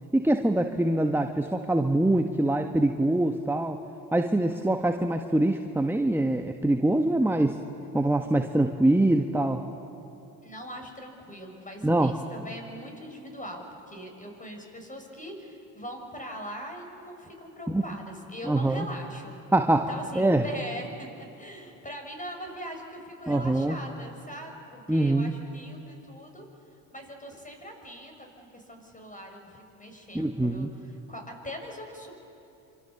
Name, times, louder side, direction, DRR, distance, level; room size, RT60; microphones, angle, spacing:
voice 1, 0.1-3.8 4.1-7.6 7.9-9.6 11.8-12.1 17.7-17.8 18.4-18.9 19.5-20.5 23.3-23.8 24.9-25.3 30.1-30.7, right 1 dB, 5° right, 5 dB, 1.4 m, -24 dB
voice 2, 10.4-19.4 19.9-21.1 21.4-26.5 26.9-32.1, equal, 15° left, 3 dB, 6.4 m, -41 dB
26.5 x 26.0 x 7.1 m, 3.0 s
hypercardioid pair, 55°, 45 cm